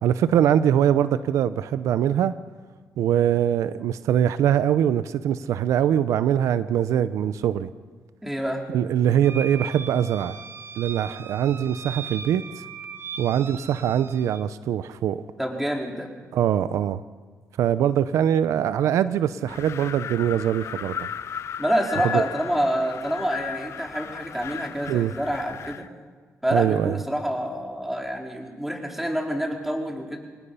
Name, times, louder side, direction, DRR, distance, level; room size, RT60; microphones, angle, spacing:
voice 1, 0.0-2.3 3.0-7.7 8.7-10.4 10.8-12.4 13.2-15.2 16.3-17.0 17.6-21.1 22.1-22.2 24.9-25.1 26.5-27.0, right 10 dB, 85° right, 14 dB, 0.7 m, -22 dB
voice 2, 8.2-8.6 15.4-16.1 21.6-25.8 26.4-30.2, equal, 5° right, 1 dB, 4.5 m, -27 dB
sound 1, 9.2-14.4, right 6 dB, 50° right, 1.2 m, -39 dB
Wind, 19.5-25.9, left 8 dB, 65° left, 0.6 m, -36 dB
26.0 x 19.5 x 5.6 m, 1.5 s
cardioid pair, 80°, 5 cm